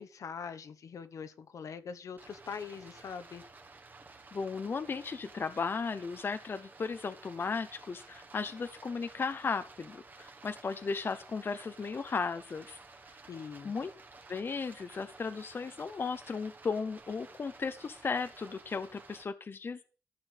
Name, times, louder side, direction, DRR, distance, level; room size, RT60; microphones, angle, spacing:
voice 1, 0.0-3.4 13.3-13.7, left 6 dB, 70° left, 10 dB, 1.2 m, -43 dB
Stream, 2.2-19.2, right 3 dB, 30° right, 1.5 m, -54 dB
voice 2, 4.3-12.8 13.6-13.9 14.3-19.8, left 5 dB, 40° left, 10 dB, 0.7 m, -35 dB
14.0 x 5.2 x 8.2 m, 0.40 s
wide cardioid pair, 140°, 6 cm